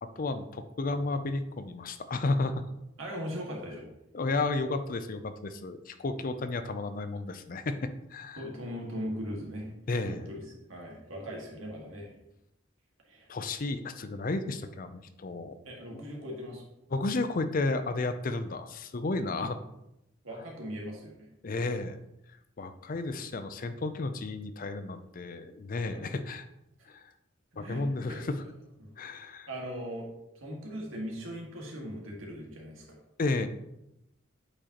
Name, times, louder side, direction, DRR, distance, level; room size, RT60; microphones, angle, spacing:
voice 1, 0.0-2.6 4.1-8.4 9.9-10.3 13.3-15.5 15.9-16.1 16.9-19.6 21.4-22.0 22.6-26.5 26.9-27.0 27.6-28.4 29.0-29.5 33.2-33.5, left 3 dB, 45° left, 10 dB, 0.5 m, -32 dB
voice 2, 3.0-3.9 8.4-9.7 10.0-10.4 10.7-12.1 13.1-13.3 15.7-16.7 19.2-19.5 20.2-21.3 25.9-26.1 27.5-28.3 28.8-28.9 29.2-30.1 30.4-33.0, equal, 90° right, -1 dB, 1.9 m, -39 dB
8.6 x 5.0 x 3.0 m, 0.84 s
head